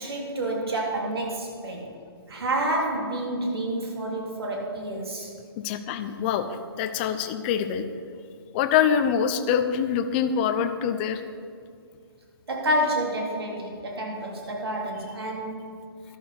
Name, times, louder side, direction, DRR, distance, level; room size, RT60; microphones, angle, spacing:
voice 1, 0.0-1.9 2.3-5.3 12.5-15.7, right 1 dB, 75° right, -1 dB, 3.5 m, -29 dB
voice 2, 5.6-7.8 8.5-11.2, left 8 dB, 25° left, 8 dB, 0.7 m, -25 dB
13.5 x 12.0 x 4.3 m, 2.2 s
hypercardioid pair, 150°, 13 cm